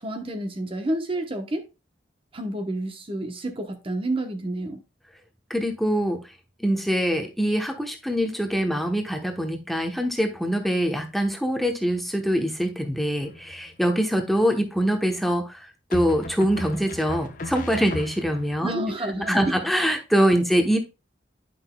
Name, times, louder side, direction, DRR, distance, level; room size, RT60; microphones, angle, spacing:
voice 1, 0.0-1.7 2.3-4.8 18.6-19.4, right 1 dB, 30° right, 1.0 m, -29 dB
voice 2, 5.5-6.2 6.6-18.8 19.3-20.8, equal, ahead, 1.0 m, -24 dB
sound 1, 13.2-13.8 15.9-18.6, left 2 dB, 45° left, 0.8 m, -36 dB
10.5 x 5.9 x 2.3 m
head